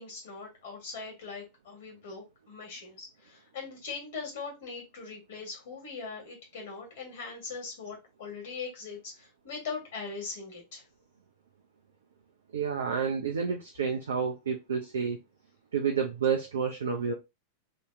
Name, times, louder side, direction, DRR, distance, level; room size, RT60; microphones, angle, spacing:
voice 1, 0.0-10.8, left 4 dB, 55° left, 1.6 m, -41 dB
voice 2, 12.5-15.2 15.7-17.1, right 6 dB, 65° right, 0.6 m, -29 dB
2.8 x 2.8 x 3.3 m
figure-of-eight pair, 90°, 0 cm